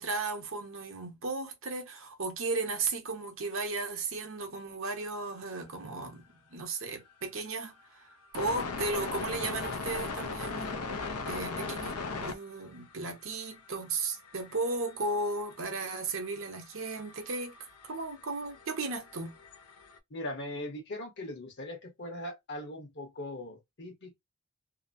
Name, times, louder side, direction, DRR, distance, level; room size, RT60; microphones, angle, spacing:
voice 1, 0.0-6.2 6.5-8.1 8.3-10.8 11.3-11.9 12.2-17.5 17.9-19.4, right 3 dB, 60° right, 0.9 m, -35 dB
sound 1, 7.1-7.2 8.1-12.4 12.7-12.9 13.2-20.0, left 4 dB, 85° left, 0.6 m, -39 dB
voice 2, 20.1-24.1, left 1 dB, 50° left, 1.1 m, -40 dB
2.8 x 2.1 x 2.5 m
head